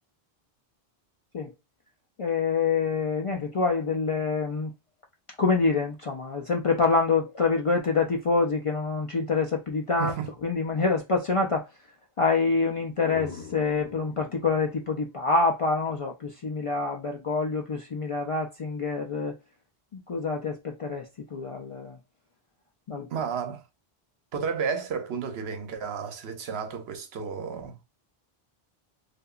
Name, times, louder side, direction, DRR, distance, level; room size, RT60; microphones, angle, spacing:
voice 1, 2.2-4.7 5.4-10.1 10.4-11.7 12.2-19.4 19.9-22.0 22.9-23.1, left 4 dB, 55° left, 0.3 m, -26 dB
voice 2, 10.0-10.3 23.1-23.7 24.3-27.8, right 6 dB, 80° right, 0.9 m, -32 dB
sound 1, 12.7-16.4, left 5 dB, 90° left, 0.8 m, -45 dB
2.8 x 2.4 x 2.3 m
omnidirectional pair, 1.0 m